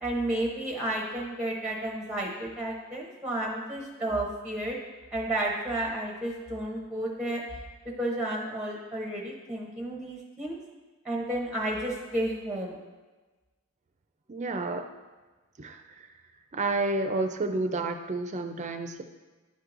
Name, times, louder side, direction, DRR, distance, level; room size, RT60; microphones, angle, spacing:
voice 1, 0.0-4.8 5.1-7.4 8.0-10.6 11.0-12.8, right 1 dB, 5° right, -1 dB, 0.7 m, -32 dB
voice 2, 14.3-14.9 15.6-16.1 16.5-19.0, right 2 dB, 35° right, 6 dB, 0.4 m, -30 dB
10.5 x 4.5 x 2.6 m, 1.3 s
head